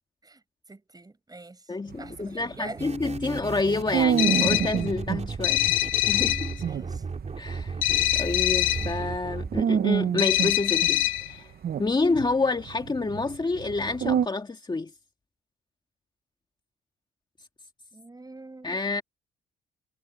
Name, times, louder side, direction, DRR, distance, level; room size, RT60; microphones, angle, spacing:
voice 1, 0.7-2.9 6.7-7.0 17.9-18.8, right 3 dB, 20° right, 7.0 m, -45 dB
voice 2, 1.7-5.6 6.1-6.6 7.4-7.8 8.1-11.5 11.8-14.9 18.6-19.0, left 3 dB, 20° left, 2.1 m, -28 dB
sound 1, 1.9-5.2 5.6-5.7 6.2-6.3 6.5-9.2 9.5-11.3 11.6-14.3, right 8 dB, 50° right, 0.8 m, -28 dB
sound 2, 2.8-9.6, right 5 dB, 35° right, 4.1 m, -35 dB
sound 3, 4.2-4.8 5.4-6.5 7.8-8.9 10.2-11.3, left 16 dB, 75° left, 2.4 m, -24 dB
cardioid pair, 90°, 20 cm